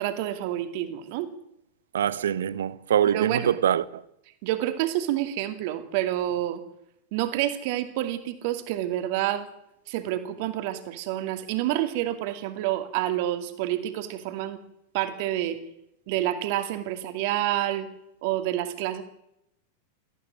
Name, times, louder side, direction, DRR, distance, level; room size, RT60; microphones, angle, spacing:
voice 1, 0.0-1.3 3.0-3.5 4.4-6.6 7.1-9.5 9.9-14.6 14.9-15.6 16.1-17.9 18.2-19.0, right 13 dB, 50° right, 2.5 m, -28 dB
voice 2, 1.9-4.0, right 9 dB, 65° right, 0.9 m, -24 dB
18.0 x 15.0 x 9.6 m
figure-of-eight pair, 90°, 0 cm